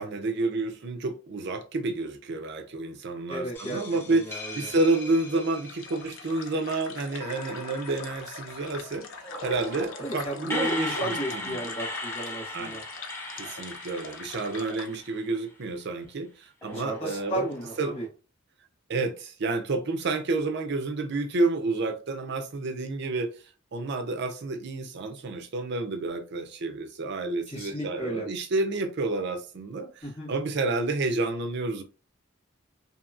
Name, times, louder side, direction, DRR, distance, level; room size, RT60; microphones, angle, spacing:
voice 1, 0.0-9.1 9.4-11.6 12.5-12.8 13.4-17.4 17.8-17.9 18.9-23.3 23.7-29.9 30.3-31.8, right 3 dB, 60° right, 0.6 m, -29 dB
voice 2, 3.3-3.8 4.1-4.7 10.0-12.8 16.7-18.1 27.5-28.3 30.0-30.3, right 1 dB, 30° left, 1.4 m, -34 dB
sound 1, 3.5-6.7 7.2-15.6 16.6-18.1, left 2 dB, 10° left, 0.8 m, -39 dB
sound 2, 5.7-15.0, left 5 dB, 90° left, 0.5 m, -43 dB
2.8 x 2.8 x 2.4 m
head